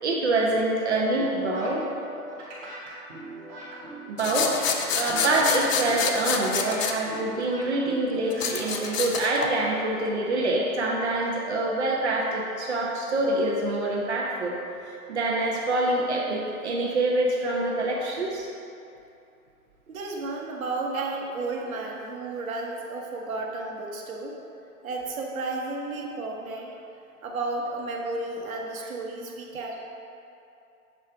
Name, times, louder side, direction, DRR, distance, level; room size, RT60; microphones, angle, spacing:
voice 1, 0.0-1.8 4.1-4.5 4.9-14.6 14.8-18.5, right 2 dB, 50° right, -2 dB, 0.8 m, -26 dB
sound 1, 1.1-9.0, right 1 dB, 15° right, 1.1 m, -41 dB
sound 2, 4.2-6.9 8.3-9.5, left 6 dB, 60° left, 0.7 m, -28 dB
voice 2, 19.9-24.4 24.8-26.7 27.2-29.8, right 3 dB, 65° right, 0 dB, 1.2 m, -32 dB
7.3 x 3.8 x 4.5 m, 2.7 s
hypercardioid pair, 160°, 44 cm